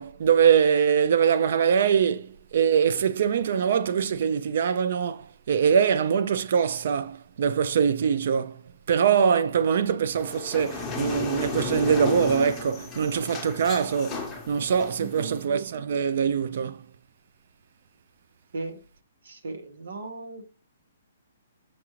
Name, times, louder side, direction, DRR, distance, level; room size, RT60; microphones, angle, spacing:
voice 1, 0.0-8.6 8.9-16.8, right 7 dB, 60° right, 0.4 m, -23 dB
sound 1, 10.2-15.4, left 4 dB, 10° left, 0.8 m, -34 dB
voice 2, 15.0-15.5 18.5-18.8 19.2-20.4, right 3 dB, 80° right, 1.0 m, -37 dB
5.9 x 2.5 x 3.0 m
hypercardioid pair, 150°, 0 cm